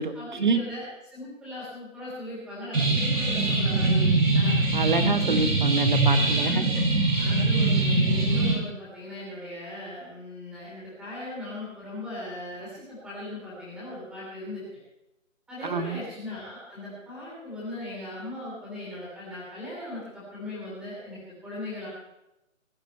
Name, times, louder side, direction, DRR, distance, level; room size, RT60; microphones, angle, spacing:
voice 1, 0.0-4.6 4.9-5.1 6.1-6.6 7.2-14.6 15.5-21.9, left 1 dB, ahead, -8 dB, 3.3 m, -38 dB
sound 1, 2.7-8.5, right 2 dB, 80° right, 6.2 m, -22 dB
voice 2, 4.7-6.8 15.6-16.0, right 4 dB, 35° right, 10 dB, 1.1 m, -27 dB
20.0 x 10.5 x 4.4 m, 0.91 s
hypercardioid pair, 175°, 40 cm